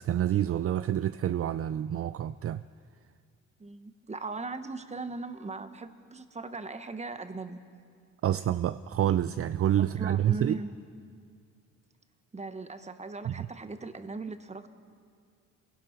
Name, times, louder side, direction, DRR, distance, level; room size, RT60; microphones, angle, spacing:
voice 1, 0.0-2.6 8.2-10.6 13.2-13.5, right 11 dB, 50° right, 0.5 m, -28 dB
voice 2, 3.6-7.6 9.8-10.7 12.3-14.7, right 3 dB, 20° right, 1.3 m, -39 dB
28.0 x 17.0 x 6.0 m
cardioid pair, 90°, 30 cm